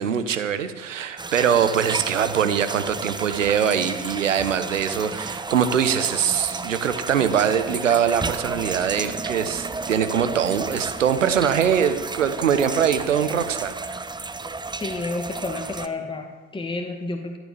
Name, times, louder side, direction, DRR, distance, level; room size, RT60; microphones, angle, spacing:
voice 1, 0.0-14.0, right 8 dB, 85° right, 11 dB, 1.0 m, -23 dB
sound 1, 1.2-15.9, right 3 dB, 10° right, 0.7 m, -32 dB
voice 2, 14.8-17.4, left 2 dB, 15° left, 3 dB, 1.8 m, -30 dB
14.0 x 9.4 x 7.0 m, 1.3 s
hypercardioid pair, 60°, 37 cm